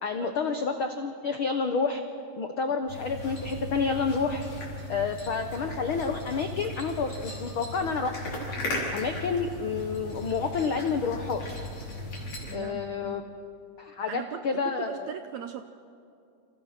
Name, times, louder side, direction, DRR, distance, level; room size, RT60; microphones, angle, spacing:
voice 1, 0.0-2.0 2.4-4.4 4.9-8.2 8.9-11.6 12.5-13.2 13.8-15.1, left 5 dB, 80° left, 6 dB, 1.1 m, -29 dB
sound 1, 2.9-12.6, left 2 dB, 50° left, 5.6 m, -37 dB
voice 2, 12.4-13.3 14.1-15.6, right 8 dB, 80° right, 8 dB, 1.7 m, -39 dB
29.0 x 27.0 x 5.9 m, 2.5 s
omnidirectional pair, 4.1 m